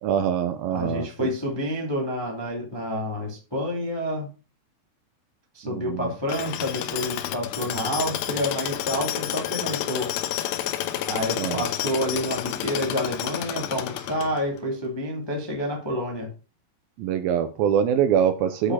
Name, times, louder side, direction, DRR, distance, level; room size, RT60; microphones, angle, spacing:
voice 1, 0.0-1.3 5.7-6.0 11.4-11.6 17.0-18.7, right 8 dB, 80° right, 2.3 m, -24 dB
voice 2, 0.7-4.3 5.5-10.1 11.1-16.3 18.6-18.7, equal, 10° left, 1.0 m, -29 dB
Tools, 6.3-14.6, left 12 dB, 90° left, 3.0 m, -30 dB
8.6 x 5.1 x 5.6 m
omnidirectional pair, 4.7 m